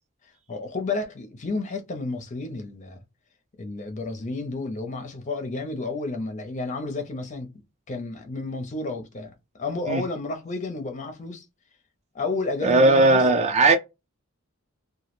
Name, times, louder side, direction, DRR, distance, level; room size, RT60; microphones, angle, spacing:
voice 1, 0.5-3.0 3.6-7.5 7.9-11.4 12.1-13.2, left 3 dB, 35° left, 0.5 m, -31 dB
voice 2, 12.6-13.8, right 2 dB, 30° right, 0.4 m, -17 dB
2.2 x 2.0 x 2.9 m
head